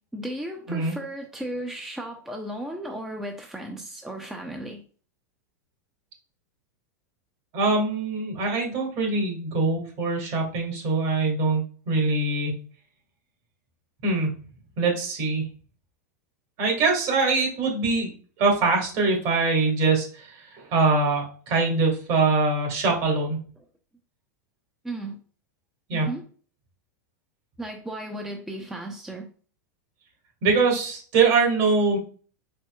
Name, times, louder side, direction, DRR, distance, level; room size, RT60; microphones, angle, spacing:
voice 1, 0.1-4.8 24.8-25.2 25.9-26.3 27.6-29.3, right 1 dB, 5° right, 0.5 m, -35 dB
voice 2, 7.5-12.5 14.0-14.3 14.8-15.4 16.6-18.1 18.4-23.4 25.9-26.1 30.4-32.0, right 3 dB, 55° right, 1.9 m, -23 dB
4.4 x 4.1 x 2.3 m
hypercardioid pair, 115°, 9 cm